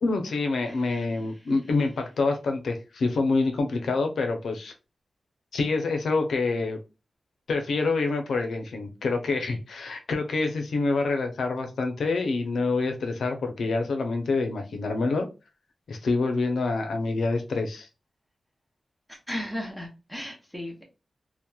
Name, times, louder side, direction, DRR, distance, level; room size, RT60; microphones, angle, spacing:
voice 1, 0.0-4.7 5.5-6.8 7.5-15.3 15.9-17.9, left 3 dB, 85° left, 5 dB, 0.5 m, -26 dB
voice 2, 0.6-1.5 19.1-20.8, left 1 dB, 5° right, 0 dB, 0.7 m, -37 dB
2.8 x 2.1 x 2.2 m, 0.30 s
wide cardioid pair, 175°, 0 cm